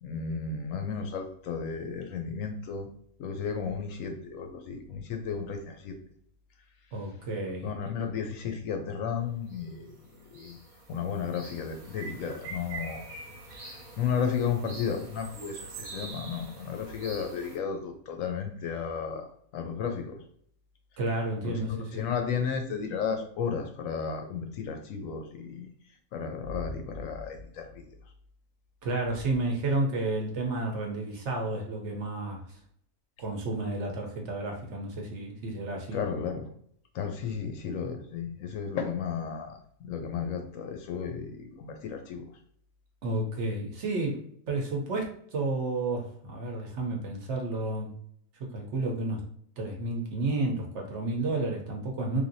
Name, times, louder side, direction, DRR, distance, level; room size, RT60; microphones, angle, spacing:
voice 1, 0.0-2.9 3.2-6.0 7.6-10.0 10.3-10.6 10.9-13.0 14.0-19.2 19.5-20.2 21.4-25.7 26.1-27.9 35.9-36.5 36.9-42.2, left 6 dB, 75° left, 5 dB, 0.9 m, -33 dB
voice 2, 6.9-7.7 21.0-22.0 28.8-32.4 33.2-36.0 43.0-47.9 48.5-49.2 49.6-52.2, right 2 dB, 60° right, 1 dB, 0.9 m, -31 dB
sound 1, 9.5-9.7 9.9-17.6, right 3 dB, 85° right, 1.4 m, -44 dB
3.3 x 2.5 x 2.6 m, 0.64 s
omnidirectional pair, 1.5 m